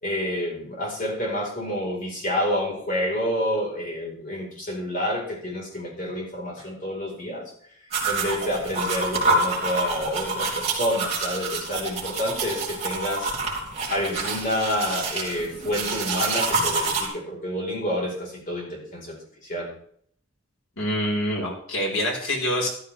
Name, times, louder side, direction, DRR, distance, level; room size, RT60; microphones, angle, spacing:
voice 1, 0.0-7.5 8.0-13.5 13.9-19.2 19.4-19.7, left 1 dB, 40° left, -2 dB, 4.4 m, -28 dB
sound 1, 7.9-17.1, right 3 dB, 30° right, 3.3 m, -27 dB
voice 2, 20.8-22.7, equal, 85° left, -2 dB, 4.6 m, -26 dB
13.5 x 13.0 x 3.5 m, 0.64 s
head